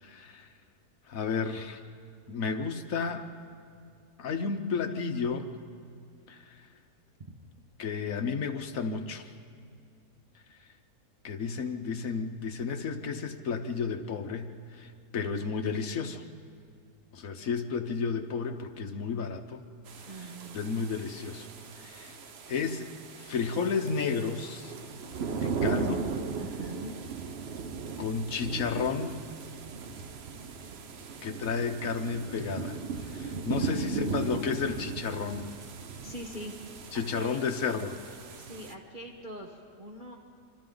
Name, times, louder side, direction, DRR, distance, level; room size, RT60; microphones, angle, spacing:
voice 1, 0.0-0.5 1.1-1.8 2.3-3.3 4.2-5.6 6.3-6.7 7.8-9.3 11.2-16.2 17.1-19.6 20.1-21.5 21.8-22.2 22.5-24.7 25.4-26.0 28.0-29.2 31.2-35.5 36.9-38.0, left 5 dB, 60° left, 7 dB, 1.3 m, -32 dB
sound 1, 19.9-38.7, right 5 dB, 50° right, 0.9 m, -37 dB
voice 2, 20.1-20.6 26.4-27.0 33.6-34.4 36.0-36.5 36.9-37.4 38.4-40.2, right 1 dB, 35° right, 0 dB, 1.3 m, -41 dB
26.0 x 25.5 x 3.9 m, 2.3 s
omnidirectional pair, 1.7 m